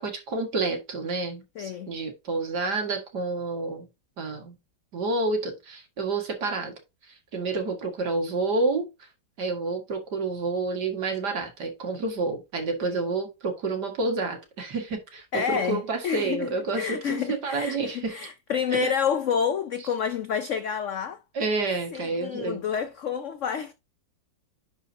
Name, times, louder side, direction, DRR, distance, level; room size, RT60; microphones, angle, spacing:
voice 1, 0.0-3.9 4.2-4.6 4.9-6.7 7.1-8.9 9.4-18.2 18.7-18.9 21.3-22.6, right 3 dB, 60° right, 2.4 m, -29 dB
voice 2, 1.6-1.9 15.3-16.5 16.7-21.2 21.9-23.7, left 7 dB, 90° left, 0.6 m, -29 dB
10.5 x 4.4 x 2.7 m
omnidirectional pair, 2.0 m